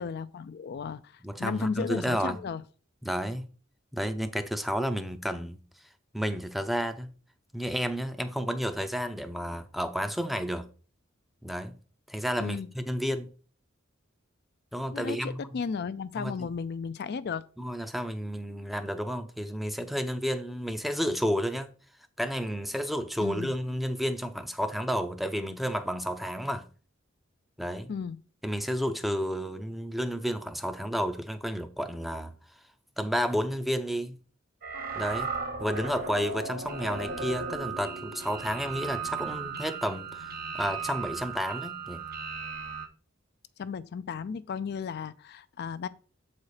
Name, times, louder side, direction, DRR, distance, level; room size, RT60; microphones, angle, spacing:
voice 1, 0.0-2.6 12.4-12.7 14.9-17.4 23.2-23.5 27.9-28.2 43.6-45.9, left 5 dB, 55° left, 0.4 m, -34 dB
voice 2, 1.2-2.4 3.0-3.5 3.9-5.6 6.1-7.1 7.5-10.7 11.4-11.7 12.1-13.3 14.7-15.6 16.1-16.5 17.6-21.7 22.2-26.7 27.6-27.9 28.4-32.3 33.0-34.2 34.9-35.3 35.6-42.0, equal, ahead, 0.5 m, -31 dB
sound 1, 34.6-42.9, right 5 dB, 50° right, 0.9 m, -36 dB
7.5 x 4.2 x 4.8 m
head